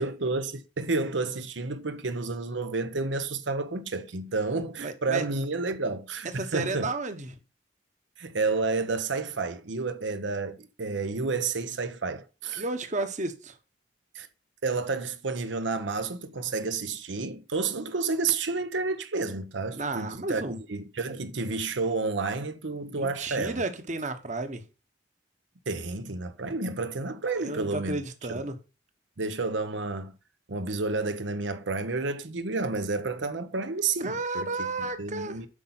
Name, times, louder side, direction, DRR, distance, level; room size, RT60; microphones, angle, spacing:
voice 1, 0.0-6.9 8.2-12.6 14.1-14.3 14.6-23.6 25.7-28.0 28.3-28.4 29.2-30.1 30.5-34.7 35.0-35.5, right 3 dB, 80° right, 0.9 m, -30 dB
voice 2, 4.8-5.2 6.2-7.3 12.6-13.5 19.7-20.6 22.9-24.6 27.4-28.6 34.0-35.4, right 3 dB, 40° right, 1.2 m, -32 dB
8.3 x 5.5 x 5.8 m
head